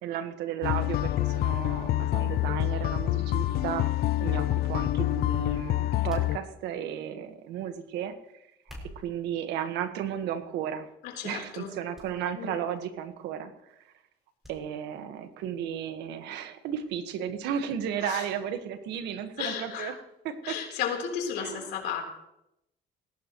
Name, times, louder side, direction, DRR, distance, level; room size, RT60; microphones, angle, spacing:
voice 1, 0.0-3.9 4.2-8.2 8.8-10.9 11.2-13.9 14.5-20.0 20.2-20.6 21.4-21.7, right 9 dB, 90° right, 8 dB, 1.6 m, -34 dB
sound 1, 0.6-6.4, left 14 dB, 65° left, 0.6 m, -27 dB
sound 2, 6.1-6.9 8.5-9.2 10.0-10.4 10.8-11.0 11.9-12.1 12.4-12.5 14.4-14.6 15.0-15.1, equal, ahead, 6.3 m, -48 dB
voice 2, 11.0-11.7 12.4-12.5 18.0-18.2 19.4-19.9 20.4-22.0, left 8 dB, 85° left, 1 dB, 3.9 m, -33 dB
20.0 x 17.0 x 3.2 m, 0.84 s
cardioid pair, 110°, 17 cm